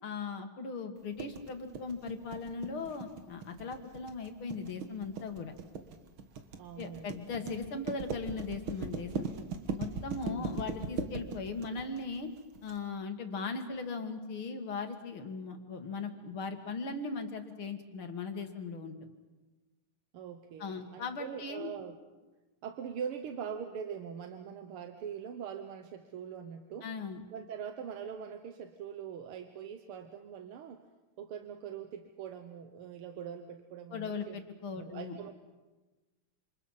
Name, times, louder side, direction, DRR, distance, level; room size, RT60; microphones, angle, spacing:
voice 1, 0.0-5.5 6.8-9.3 9.8-12.3 12.6-19.0 20.6-21.7 26.8-27.2 33.9-35.2, left 4 dB, 75° left, 5 dB, 2.7 m, -38 dB
sound 1, 1.2-12.7, right 4 dB, 70° right, 2.3 m, -39 dB
voice 2, 6.6-7.5 10.2-10.5 20.1-22.0 22.6-26.9 27.3-30.8 31.2-34.4 34.7-35.3, right 7 dB, 90° right, 7 dB, 2.0 m, -42 dB
27.5 x 27.0 x 5.8 m, 1.2 s
omnidirectional pair, 2.3 m